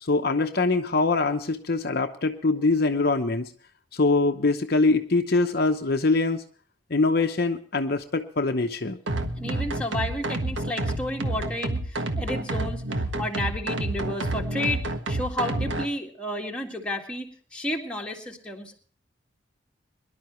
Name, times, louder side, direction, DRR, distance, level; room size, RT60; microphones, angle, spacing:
voice 1, 0.0-3.5 3.9-6.4 6.9-9.0, left 3 dB, 55° left, 5 dB, 0.9 m, -23 dB
sound 1, 9.1-15.9, right 2 dB, 80° right, 1.5 m, -29 dB
voice 2, 9.4-12.8 13.2-18.8, left 1 dB, 5° left, 0 dB, 2.0 m, -32 dB
23.0 x 11.5 x 3.1 m, 0.43 s
head